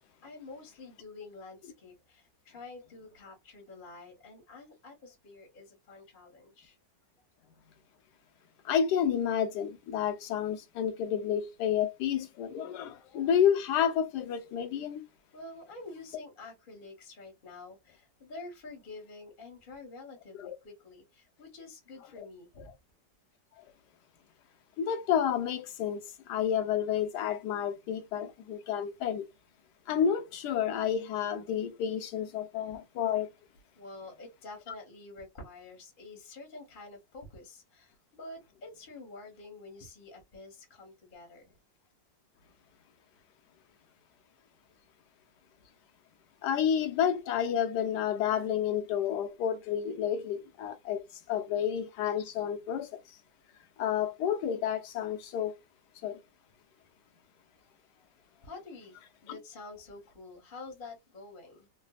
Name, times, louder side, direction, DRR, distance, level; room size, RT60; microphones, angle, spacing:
voice 1, 0.2-6.8 15.3-22.7 33.8-41.5 44.8-44.9 57.7-58.1 58.3-61.7, left 3 dB, 35° left, 0.9 m, -48 dB
voice 2, 8.6-15.0 20.3-20.5 24.8-26.0 26.3-29.2 29.9-33.3 46.4-51.0 51.3-52.9 53.8-55.5 56.0-56.2 59.3-59.4, left 8 dB, 75° left, 1.2 m, -30 dB
3.3 x 2.2 x 2.3 m
omnidirectional pair, 1.9 m